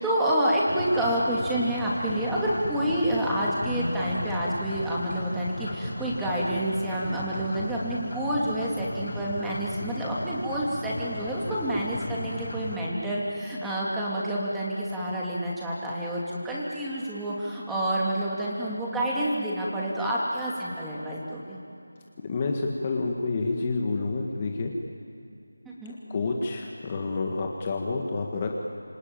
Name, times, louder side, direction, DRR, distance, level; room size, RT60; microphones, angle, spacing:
voice 1, 0.0-21.6 25.6-25.9, right 1 dB, 5° right, -6 dB, 2.8 m, -28 dB
sound 1, 0.7-12.8, left 2 dB, 45° left, 7.0 m, -36 dB
voice 2, 22.2-24.7 26.1-28.5, left 3 dB, 25° left, 1 dB, 1.7 m, -29 dB
27.5 x 23.5 x 9.0 m, 2.5 s
figure-of-eight pair, 170°, 0 cm